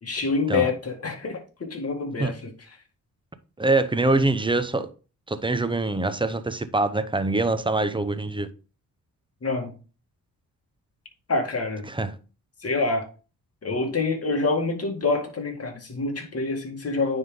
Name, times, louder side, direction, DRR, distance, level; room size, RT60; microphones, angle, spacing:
voice 1, 0.0-2.5 9.4-9.7 11.3-11.9 12.6-13.0 13.6-17.2, left 3 dB, 40° left, 2.1 m, -26 dB
voice 2, 3.6-4.9 5.3-8.5 11.9-12.2, right 2 dB, 15° right, 0.8 m, -24 dB
9.3 x 3.7 x 3.7 m
cardioid pair, 75°, 37 cm